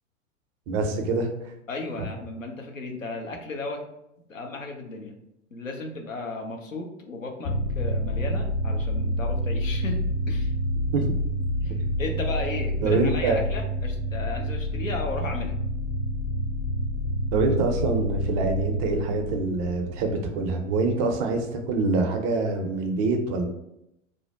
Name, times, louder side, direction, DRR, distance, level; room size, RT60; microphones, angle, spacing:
voice 1, 0.7-1.3 10.9-11.1 12.8-13.4 17.3-23.5, right 3 dB, 30° right, 4 dB, 0.4 m, -25 dB
voice 2, 1.7-3.8 4.3-5.1 5.5-10.0 10.3-10.5 11.6-15.6, left 3 dB, 90° left, 2 dB, 0.6 m, -34 dB
sound 1, 7.4-20.9, equal, 70° left, 1.4 m, -28 dB
2.5 x 2.1 x 3.6 m, 0.83 s
figure-of-eight pair, 90°, 38 cm